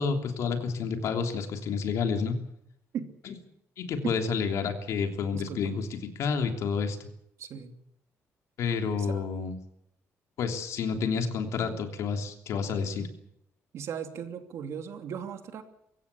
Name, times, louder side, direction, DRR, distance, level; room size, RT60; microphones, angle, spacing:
voice 1, 0.0-2.4 3.3-3.4 3.8-5.9 6.1-7.0 8.6-9.6 10.4-13.1, left 5 dB, 70° left, 5 dB, 3.2 m, -29 dB
voice 2, 5.3-5.7 7.4-7.8 9.0-9.3 13.7-15.6, right 8 dB, 60° right, 7 dB, 2.7 m, -37 dB
24.0 x 15.5 x 8.4 m, 0.78 s
cardioid pair, 165°, 5 cm